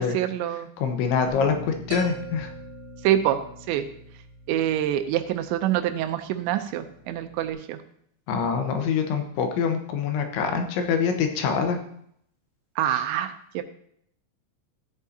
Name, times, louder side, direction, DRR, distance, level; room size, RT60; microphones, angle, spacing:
voice 1, 0.0-0.7 3.0-3.4 3.7-3.9 4.5-7.8 12.8-13.6, right 11 dB, 80° right, 8 dB, 2.8 m, -26 dB
voice 2, 0.8-2.5 8.3-11.8 12.9-13.0, left 6 dB, 85° left, 5 dB, 3.4 m, -25 dB
Bass guitar, 1.3-7.5, left 1 dB, 70° left, 3.4 m, -45 dB
sound 1, 1.9-3.7, right 7 dB, 60° right, 3.4 m, -41 dB
14.0 x 8.3 x 2.8 m, 0.68 s
omnidirectional pair, 5.3 m